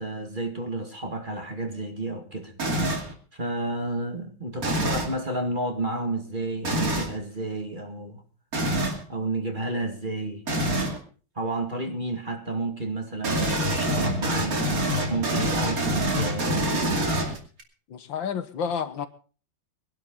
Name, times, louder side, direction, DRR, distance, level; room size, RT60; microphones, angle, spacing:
voice 1, 0.0-2.6 3.3-8.2 9.1-10.4 11.4-14.7 15.1-16.9, right 2 dB, 25° right, 2.0 m, -31 dB
sound 1, 2.6-3.1 4.6-5.1 6.6-7.1 8.5-9.0 10.5-11.0 13.2-17.6, right 1 dB, 45° right, 3.0 m, -26 dB
voice 2, 17.9-19.1, left 7 dB, 70° left, 1.8 m, -30 dB
22.5 x 11.5 x 3.8 m
omnidirectional pair, 2.2 m